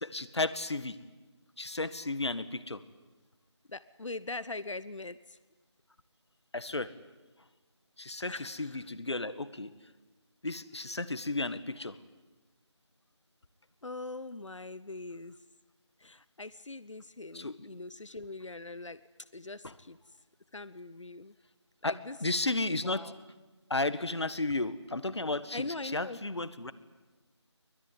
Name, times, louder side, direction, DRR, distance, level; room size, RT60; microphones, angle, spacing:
voice 1, 0.0-1.0 1.6-2.8 6.5-6.9 8.0-9.7 10.4-12.0 17.3-17.7 19.6-19.7 21.8-21.9 22.2-23.1 23.7-26.7, left 2 dB, 65° left, 14 dB, 1.7 m, -33 dB
voice 2, 3.7-5.4 8.3-8.9 13.8-15.3 16.0-19.0 19.3-20.2 20.5-21.3 21.8-22.2 22.7-23.1 25.5-26.2, left 2 dB, 85° left, 16 dB, 1.0 m, -42 dB
24.5 x 20.5 x 9.5 m, 1.2 s
figure-of-eight pair, 175°, 15 cm